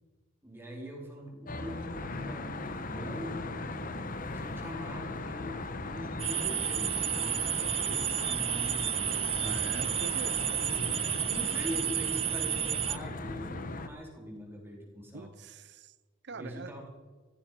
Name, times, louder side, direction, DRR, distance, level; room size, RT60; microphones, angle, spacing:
voice 1, 0.4-3.9 4.3-9.9 11.3-15.3 16.3-16.9, equal, 10° right, -1 dB, 4.1 m, -42 dB
Traffic noise roadway noise, 1.5-13.9, left 2 dB, 45° left, 1.1 m, -38 dB
sound 1, 6.2-13.0, right 12 dB, 30° right, 0.4 m, -31 dB
voice 2, 9.4-10.4 15.1-15.9 16.2-16.7, right 4 dB, 60° right, 16 dB, 0.8 m, -43 dB
14.5 x 14.5 x 5.9 m, 1.4 s
head